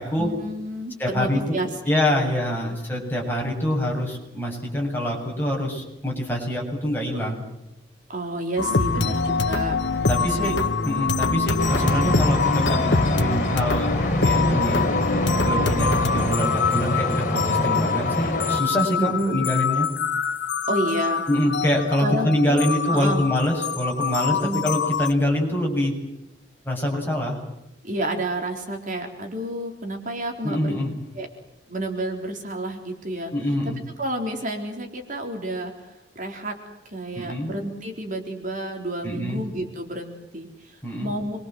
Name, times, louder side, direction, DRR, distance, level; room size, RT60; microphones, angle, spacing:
voice 1, 0.2-1.7 2.2-2.3 2.6-2.8 8.1-9.8 10.3-10.6 19.0-19.4 20.7-21.3 22.0-23.2 24.3-24.6 27.8-30.8 31.1-31.3 31.7-33.3 33.6-36.5 36.9-41.4, right 1 dB, 45° right, 3 dB, 3.9 m, -30 dB
voice 2, 1.0-1.6 1.9-7.4 8.9-9.3 10.1-10.6 10.8-13.9 14.2-14.8 15.5-19.9 21.3-26.0 26.6-27.4 30.4-30.9 33.3-33.8 37.2-37.5 39.0-39.4 40.8-41.1, left 1 dB, 10° left, -1 dB, 7.8 m, -25 dB
sound 1, 8.6-25.1, left 4 dB, 75° left, 1.4 m, -25 dB
sound 2, 11.6-18.6, left 1 dB, 45° left, 5.7 m, -25 dB
27.0 x 24.5 x 7.8 m, 0.91 s
head